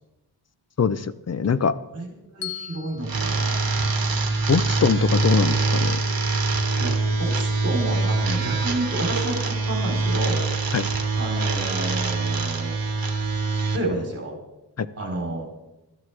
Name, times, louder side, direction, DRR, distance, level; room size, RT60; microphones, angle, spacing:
voice 1, 0.8-1.7 4.5-6.0 10.7-10.8 14.8-14.9, left 6 dB, 40° left, 14 dB, 0.6 m, -22 dB
voice 2, 2.3-4.2 6.8-10.5 11.2-12.8 13.7-14.4 15.0-15.5, right 1 dB, 35° right, -1 dB, 3.8 m, -30 dB
Bell, 2.4-4.6, left 10 dB, 85° left, 1.4 m, -40 dB
sound 1, 3.0-13.8, right 3 dB, 55° right, 1.6 m, -24 dB
20.0 x 12.5 x 3.3 m, 0.99 s
wide cardioid pair, 115°, 42 cm